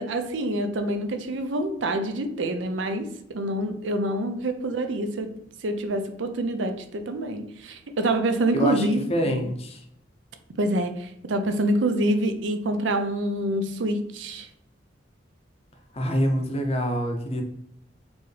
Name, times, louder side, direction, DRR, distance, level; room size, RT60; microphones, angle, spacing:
voice 1, 0.0-5.3 5.6-9.4 10.6-14.5, right 1 dB, 75° right, 7 dB, 0.5 m, -26 dB
voice 2, 8.5-9.8 15.9-17.4, equal, 35° left, 4 dB, 0.6 m, -26 dB
4.4 x 2.8 x 3.2 m, 0.73 s
head